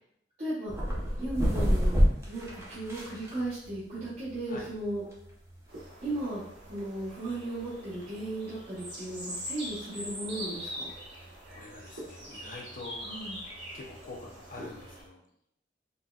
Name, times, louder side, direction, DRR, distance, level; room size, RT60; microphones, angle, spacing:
voice 1, 0.4-0.7 1.2-5.0 6.0-10.9 13.0-13.4, right 1 dB, 40° right, -11 dB, 0.9 m, -36 dB
sound 1, 0.7-15.1, equal, 15° right, 0.5 m, -33 dB
sound 2, 5.7-15.0, equal, 85° right, 1.0 m, -43 dB
voice 2, 11.1-13.0 13.7-15.2, left 3 dB, 50° left, 0 dB, 0.5 m, -46 dB
4.0 x 2.2 x 2.3 m, 0.74 s
head